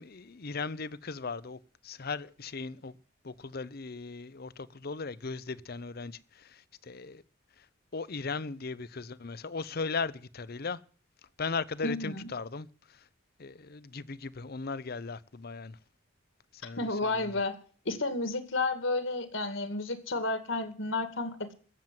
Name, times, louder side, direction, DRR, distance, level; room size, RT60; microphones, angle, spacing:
voice 1, 0.0-3.0 3.2-7.2 7.6-7.7 7.9-10.8 11.4-13.0 13.4-15.8 16.5-17.4, left 4 dB, 50° left, 0.7 m, -38 dB
voice 2, 11.8-12.3 16.8-17.5 17.9-21.5, left 2 dB, 65° left, 2.2 m, -31 dB
15.0 x 7.5 x 9.3 m
head